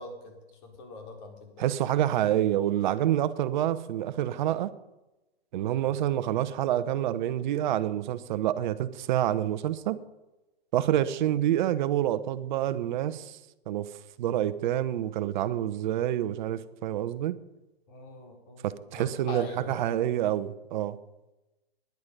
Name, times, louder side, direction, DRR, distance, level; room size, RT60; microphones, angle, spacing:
voice 1, 0.0-1.6 5.6-5.8 11.1-11.3 17.9-19.8, left 2 dB, 45° left, 2 dB, 4.4 m, -43 dB
voice 2, 1.6-4.7 5.5-10.0 10.7-13.4 13.7-13.9 14.2-17.4 18.6-21.0, right 12 dB, 50° right, 14 dB, 1.0 m, -27 dB
17.0 x 11.0 x 5.4 m, 1.0 s
hypercardioid pair, 125°, 31 cm